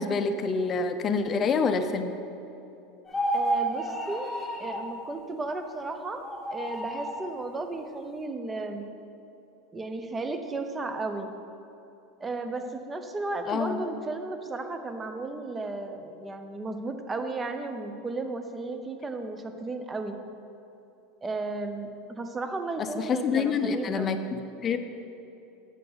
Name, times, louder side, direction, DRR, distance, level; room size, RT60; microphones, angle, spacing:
voice 1, 0.0-2.1 13.5-13.8 23.0-24.8, left 5 dB, 30° left, 8 dB, 0.5 m, -27 dB
sound 1, 3.1-4.9 6.2-7.2, right 1 dB, 10° left, 1.2 m, -30 dB
voice 2, 3.3-4.3 4.6-6.2 6.5-8.9 9.7-11.3 12.2-20.2 21.2-24.2, right 3 dB, 15° right, 7 dB, 0.6 m, -34 dB
8.9 x 6.6 x 3.9 m, 2.8 s
supercardioid pair, 125°, 0 cm